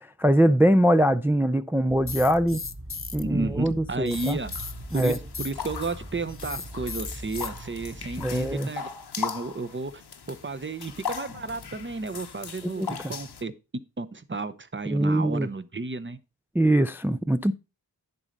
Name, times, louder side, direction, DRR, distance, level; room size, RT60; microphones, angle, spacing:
voice 1, 0.0-2.6 3.1-4.4 4.9-5.2 8.2-8.7 12.6-12.9 14.9-15.5 16.6-17.5, right 1 dB, 5° right, 0.4 m, -22 dB
sound 1, 1.9-8.6, right 1 dB, 45° right, 3.1 m, -41 dB
sound 2, 2.1-3.2 4.1-5.5 6.3-7.5, left 5 dB, 35° left, 0.6 m, -36 dB
voice 2, 3.3-4.5 4.9-8.9 9.2-10.0 10.3-13.5 14.0-16.2, right 3 dB, 30° right, 0.8 m, -32 dB
sound 3, 4.1-13.4, left 6 dB, 80° left, 0.9 m, -39 dB
10.5 x 4.1 x 5.1 m
wide cardioid pair, 85°, 39 cm